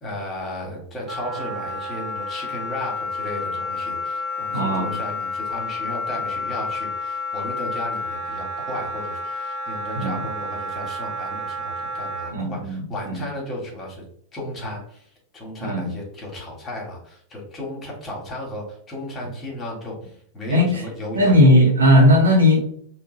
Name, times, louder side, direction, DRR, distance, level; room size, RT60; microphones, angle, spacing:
voice 1, 0.0-14.0 14.3-15.0 15.3-21.3, left 1 dB, 20° left, -2 dB, 1.6 m, -34 dB
Wind instrument woodwind instrument, 1.1-12.3, left 2 dB, 30° right, 1.4 m, -30 dB
voice 2, 4.5-4.9 10.0-10.2 12.3-13.2 15.6-15.9 20.5-20.8 21.1-22.6, left 1 dB, 75° right, 0 dB, 0.9 m, -17 dB
3.7 x 2.3 x 3.8 m, 0.63 s
figure-of-eight pair, 90°, 0 cm